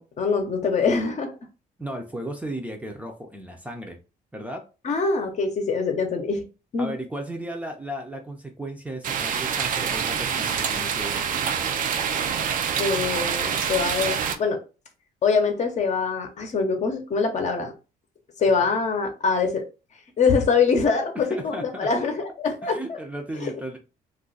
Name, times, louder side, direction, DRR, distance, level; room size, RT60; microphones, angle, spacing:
voice 1, 0.0-1.3 4.8-6.5 6.7-7.0 12.8-14.6 15.2-17.7 18.4-19.6 20.2-23.0 23.4-23.5, left 5 dB, 45° left, 4 dB, 0.8 m, -24 dB
voice 2, 1.8-4.0 4.3-4.6 6.8-11.2 18.5-18.7 21.3-21.9 22.6-23.8, right 1 dB, 10° right, 3 dB, 0.5 m, -35 dB
sound 1, 9.0-14.4, right 7 dB, 55° right, 0.4 m, -26 dB
2.4 x 2.2 x 3.9 m, 0.32 s
cardioid pair, 105°, 16 cm